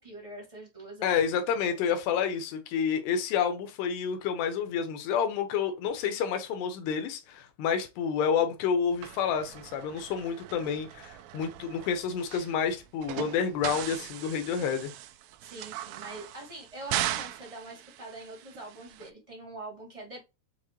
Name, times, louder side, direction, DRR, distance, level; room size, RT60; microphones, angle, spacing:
voice 1, 0.0-1.2 1.6-1.8 15.4-20.2, right 2 dB, 20° right, 0.9 m, -44 dB
voice 2, 1.0-14.9, left 7 dB, 90° left, 2.9 m, -29 dB
sound 1, 9.0-19.1, right 13 dB, 80° right, 2.4 m, -39 dB
7.1 x 2.4 x 3.0 m
omnidirectional pair, 4.7 m